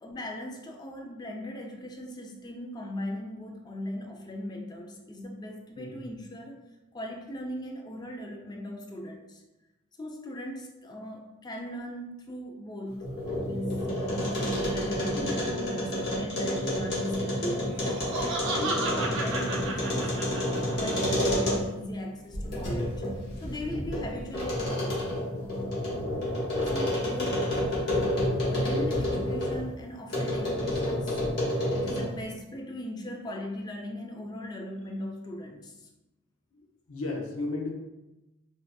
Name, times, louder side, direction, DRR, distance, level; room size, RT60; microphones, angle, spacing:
voice 1, 0.0-6.7 6.9-9.4 10.0-13.9 14.3-23.1 23.4-25.9 26.6-31.3 31.7-35.9, left 1 dB, 20° left, 2 dB, 0.3 m, -39 dB
sound 1, 12.9-21.9 22.3-29.6 30.1-32.2, left 1 dB, 50° left, 0.9 m, -29 dB
voice 2, 14.9-15.3 15.8-17.1 36.5-37.7, left 2 dB, 70° left, 1 dB, 0.6 m, -36 dB
Laughter, 17.7-20.9, right 3 dB, 60° right, 0.5 m, -33 dB
3.3 x 2.7 x 2.2 m, 0.99 s
head